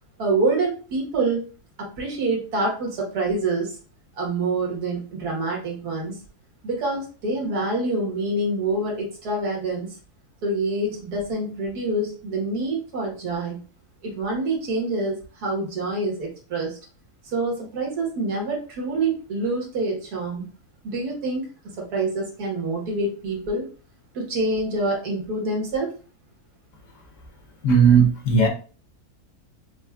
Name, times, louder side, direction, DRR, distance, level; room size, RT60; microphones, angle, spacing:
voice 1, 0.2-1.4 1.8-3.8 4.1-6.2 6.6-10.0 10.4-13.6 14.0-16.8 17.2-20.4 20.8-21.5 21.8-23.6 24.1-25.9, right 2 dB, 85° right, -1 dB, 1.8 m, -26 dB
voice 2, 27.6-28.5, right 5 dB, 60° left, 2 dB, 1.1 m, -16 dB
6.0 x 2.1 x 2.3 m, 0.36 s
omnidirectional pair, 1.6 m